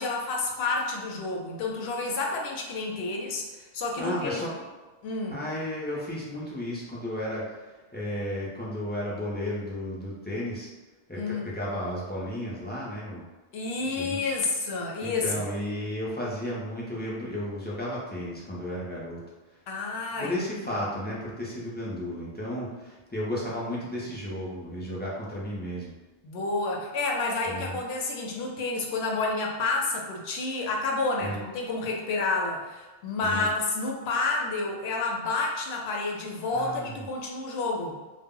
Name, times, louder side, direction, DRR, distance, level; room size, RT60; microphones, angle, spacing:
voice 1, 0.0-4.4 5.0-5.4 11.1-11.5 13.5-15.4 19.7-20.4 26.2-38.0, left 3 dB, 85° left, 0 dB, 0.8 m, -30 dB
voice 2, 4.0-4.7 5.3-10.7 11.1-13.2 14.0-14.3 15.0-19.2 20.2-25.9 27.4-27.8 31.2-31.4 33.2-33.5 36.5-37.0, left 1 dB, 15° left, -7 dB, 0.3 m, -33 dB
2.1 x 2.0 x 3.6 m, 1.2 s
omnidirectional pair, 1.0 m